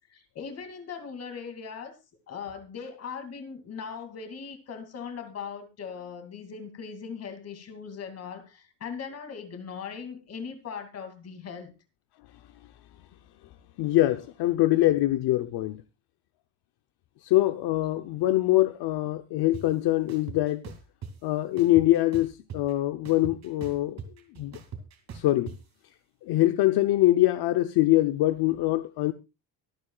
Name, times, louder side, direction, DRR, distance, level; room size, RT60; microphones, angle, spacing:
voice 1, 0.1-2.0 2.3-11.7, left 6 dB, 35° left, 2.5 m, -39 dB
voice 2, 13.8-15.8 17.2-20.6 21.2-24.0 24.3-24.6 25.1-25.5 26.2-29.1, left 16 dB, 65° left, 0.8 m, -24 dB
sound 1, 19.5-19.6 20.1-21.1 21.6-22.7 23.0-25.6, right 6 dB, 40° right, 2.5 m, -40 dB
24.0 x 8.7 x 2.4 m
cardioid pair, 180°, 41 cm